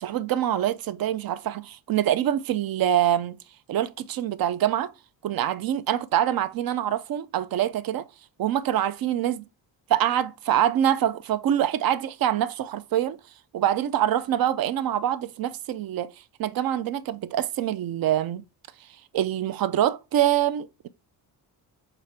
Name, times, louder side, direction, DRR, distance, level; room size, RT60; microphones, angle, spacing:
voice 1, 0.0-3.4 3.7-4.9 5.2-8.1 8.4-9.4 9.9-13.2 13.5-16.1 16.4-18.4 19.1-20.9, right 11 dB, 55° right, 0.5 m, -25 dB
4.7 x 2.9 x 3.3 m
cardioid pair, 80°, 44 cm